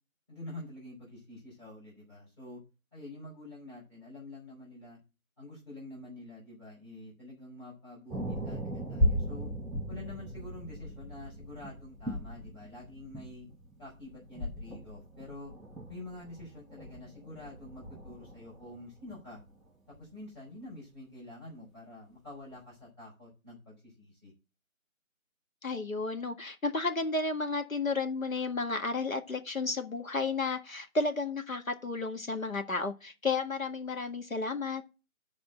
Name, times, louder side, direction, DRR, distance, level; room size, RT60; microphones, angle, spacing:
voice 1, 0.3-2.6 2.9-5.0 5.4-9.5 9.9-13.5 13.8-15.5 15.9-19.4 19.9-24.3, left 2 dB, 20° left, 4.7 m, -47 dB
sound 1, 8.1-19.5 19.9-20.0, equal, ahead, 0.6 m, -37 dB
voice 2, 25.6-34.8, left 3 dB, 70° left, 1.9 m, -32 dB
10.5 x 4.3 x 7.6 m
figure-of-eight pair, 175°, 42 cm